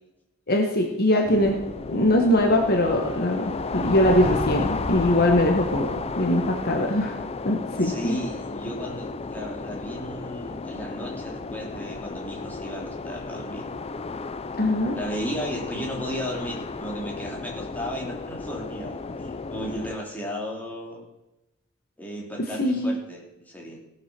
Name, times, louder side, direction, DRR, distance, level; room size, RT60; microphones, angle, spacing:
voice 1, 0.5-1.6 1.9-7.2 7.4-8.2 14.6-15.0 22.6-23.0, left 1 dB, 50° left, 2 dB, 1.4 m, -22 dB
sound 1, 1.2-20.0, left 4 dB, 30° left, 0.5 m, -33 dB
voice 2, 7.8-13.7 14.9-21.0 22.0-23.8, equal, 10° left, -2 dB, 2.8 m, -35 dB
16.5 x 6.7 x 6.0 m, 0.95 s
head